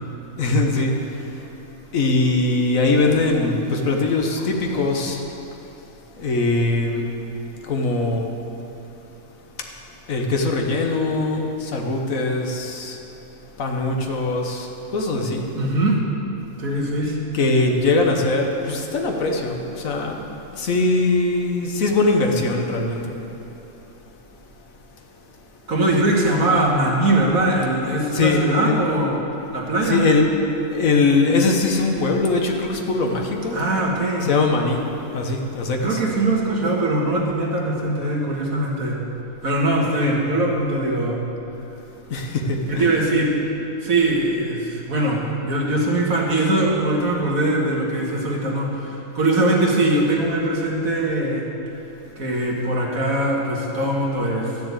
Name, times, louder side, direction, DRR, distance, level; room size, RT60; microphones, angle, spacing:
voice 1, 0.4-1.5 1.9-5.2 6.2-7.1 7.6-8.3 9.6-9.7 10.1-13.0 13.6-15.5 17.3-23.2 28.1-28.8 29.8-30.4 30.7-33.6 34.2-34.9 35.1-36.0 42.1-42.9, left 3 dB, 80° left, 2 dB, 1.6 m, -21 dB
voice 2, 15.6-16.0 16.6-17.2 25.7-29.2 29.5-30.1 33.5-34.3 35.8-39.0 39.4-41.2 42.7-43.3 43.8-51.5 52.2-54.6, right 1 dB, 90° right, -2 dB, 2.2 m, -21 dB
12.5 x 6.9 x 8.1 m, 3.0 s
omnidirectional pair, 1.4 m